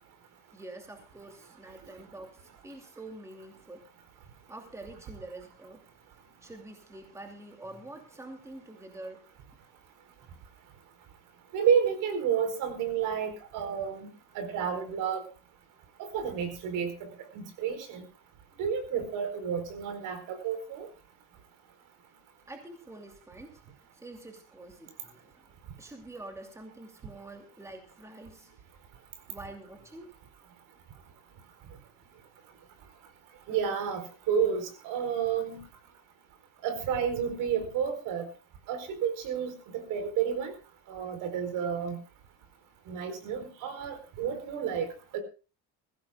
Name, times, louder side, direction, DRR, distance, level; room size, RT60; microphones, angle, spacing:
voice 1, 0.5-3.9 4.5-5.9 6.4-9.3 22.5-23.6 23.9-25.5 25.8-28.5 29.3-30.2, right 2 dB, 10° right, 4 dB, 2.7 m, -46 dB
voice 2, 11.5-15.2 16.0-18.0 18.6-20.9 33.5-35.6 36.6-38.3 38.7-40.5 40.9-42.0 42.9-45.2, right 7 dB, 65° right, 9 dB, 4.4 m, -31 dB
21.5 x 16.5 x 2.4 m, 0.33 s
cardioid pair, 140°, 34 cm